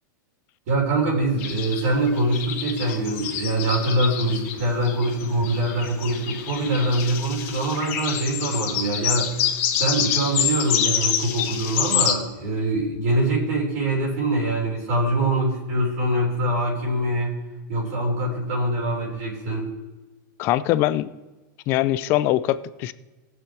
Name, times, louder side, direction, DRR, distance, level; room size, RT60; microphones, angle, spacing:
voice 1, 0.7-9.3 9.8-17.4 17.7-19.7, right 1 dB, 50° right, -3 dB, 3.6 m, -24 dB
sound 1, 1.4-12.1, left 9 dB, 40° left, 1.7 m, -27 dB
voice 2, 20.4-21.1 21.7-22.9, left 14 dB, 20° left, 15 dB, 0.3 m, -22 dB
19.0 x 6.9 x 4.5 m, 1.2 s
supercardioid pair, 180°, 11 cm